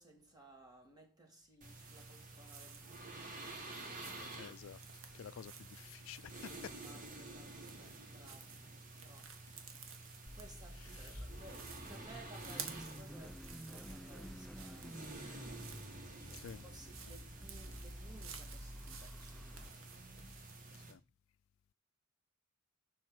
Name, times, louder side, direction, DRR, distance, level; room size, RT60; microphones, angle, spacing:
voice 1, 0.0-3.4 6.6-9.4 9.8-19.9, right 2 dB, 20° right, 2.3 m, -60 dB
sound 1, 1.6-20.9, right 2 dB, 40° right, 2.0 m, -51 dB
sound 2, 1.8-20.7, right 7 dB, 75° right, 1.5 m, -55 dB
voice 2, 4.3-4.8 5.1-6.7 10.7-11.2 16.3-16.7 17.1-17.2 20.9-21.0, left 8 dB, 75° left, 0.4 m, -51 dB
Car / Idling / Accelerating revving vroom, 10.3-19.7, equal, ahead, 0.3 m, -50 dB
7.4 x 5.7 x 6.0 m
head